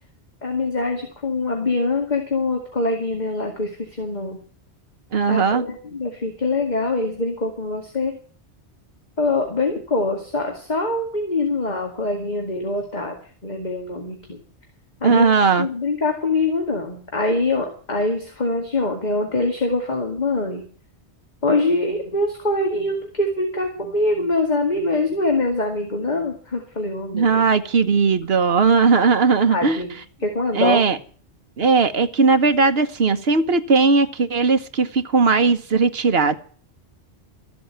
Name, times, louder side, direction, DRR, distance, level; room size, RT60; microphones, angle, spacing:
voice 1, 0.4-4.4 5.3-8.1 9.2-13.2 13.4-14.4 15.0-15.3 15.6-20.6 21.4-27.4 29.5-30.8, left 2 dB, 40° left, 2.3 m, -24 dB
voice 2, 5.1-5.6 15.0-15.7 27.1-29.8 30.5-31.0 31.6-36.4, right 4 dB, 60° right, 1.4 m, -18 dB
14.0 x 7.7 x 8.9 m
omnidirectional pair, 1.2 m